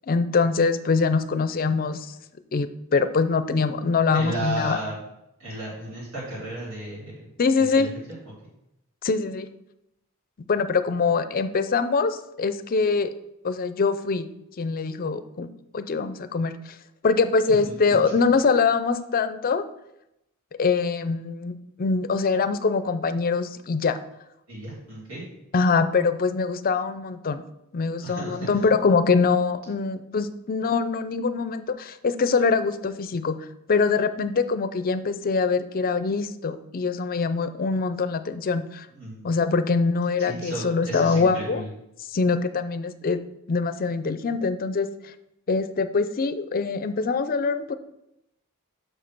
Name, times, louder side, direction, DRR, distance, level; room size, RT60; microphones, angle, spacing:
voice 1, 0.1-2.1 2.5-4.8 7.4-7.9 9.0-9.5 10.5-13.1 13.4-14.3 14.6-15.5 15.7-16.6 17.0-19.6 20.6-24.0 25.5-27.4 27.7-33.4 33.7-38.9 39.2-41.6 42.1-43.2 43.5-45.1 45.5-47.8, left 4 dB, 40° left, 12 dB, 0.5 m, -23 dB
voice 2, 4.1-4.9 5.4-7.3 7.6-8.2 17.7-17.8 24.5-25.2 28.0-28.5 38.9-39.3 40.3-41.7, right 1 dB, 70° right, -8 dB, 2.9 m, -34 dB
6.3 x 5.2 x 5.9 m, 0.86 s
head